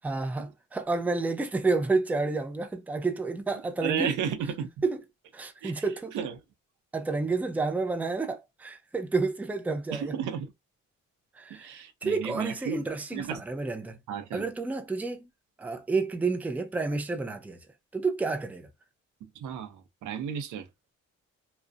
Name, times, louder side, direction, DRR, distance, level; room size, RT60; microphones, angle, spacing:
voice 1, 0.0-4.1 4.8-5.0 5.3-6.1 6.9-10.2 11.4-14.0 14.3-15.3 15.6-17.6 17.9-18.7, right 3 dB, 5° right, 0.4 m, -30 dB
voice 2, 3.8-4.7 5.6-5.7 6.1-6.3 9.9-10.5 11.5-12.8 13.1-13.4 14.1-14.5 19.2-20.7, right 7 dB, 75° right, 0.6 m, -33 dB
2.5 x 2.1 x 2.4 m
cardioid pair, 90°, 30 cm